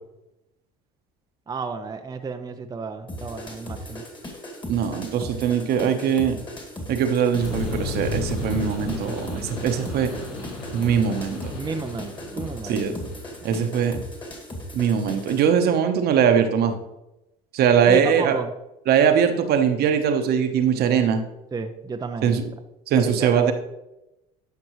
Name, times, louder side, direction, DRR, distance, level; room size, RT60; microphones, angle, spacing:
voice 1, 1.5-4.0 11.5-12.8 13.4-13.5 17.9-18.5 21.5-22.4 22.9-23.5, right 4 dB, 20° right, 5 dB, 0.6 m, -32 dB
sound 1, 3.1-15.5, equal, 25° left, 2.2 m, -37 dB
voice 2, 4.7-6.4 6.9-10.1 10.7-11.5 12.6-12.9 13.4-14.0 14.7-16.7 17.5-18.4 18.9-21.2 22.2-22.4 22.9-23.5, right 7 dB, 60° right, 6 dB, 1.1 m, -21 dB
sound 2, 7.4-14.0, left 2 dB, 85° left, 3.0 m, -34 dB
12.0 x 5.3 x 3.1 m, 0.91 s
supercardioid pair, 80°, 19 cm